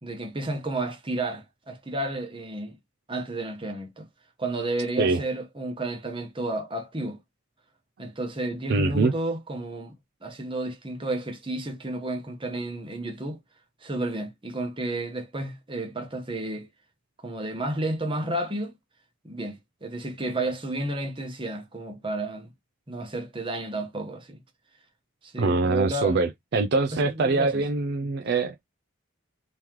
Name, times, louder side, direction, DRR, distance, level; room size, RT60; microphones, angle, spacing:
voice 1, 0.0-2.8 3.1-4.1 4.4-7.2 8.0-9.9 10.2-13.4 13.8-16.7 17.2-18.7 19.2-22.5 22.9-24.4 25.2-26.2 27.0-27.6, right 2 dB, 25° right, 1.0 m, -31 dB
voice 2, 8.7-9.1 25.4-28.6, right 3 dB, 50° right, 0.4 m, -24 dB
3.6 x 3.1 x 3.0 m
head